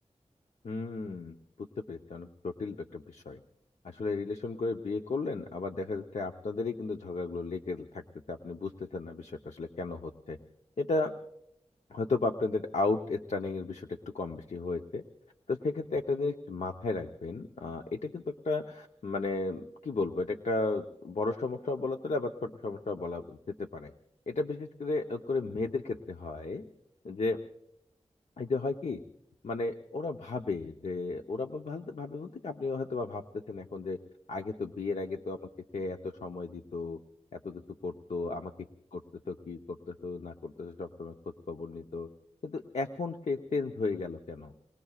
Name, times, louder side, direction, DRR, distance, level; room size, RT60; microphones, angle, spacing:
voice 1, 0.6-3.4 3.8-8.0 8.3-10.4 10.8-11.1 11.9-15.0 15.5-23.9 24.3-26.6 27.0-27.4 28.4-29.0 29.4-34.0 34.3-35.4 35.7-37.0 37.3-38.5 38.9-39.0 39.3-41.1 41.5-42.1 42.4-44.5, left 3 dB, 75° left, 4 dB, 0.9 m, -34 dB
29.5 x 20.5 x 2.4 m, 0.78 s
wide cardioid pair, 100°, 12 cm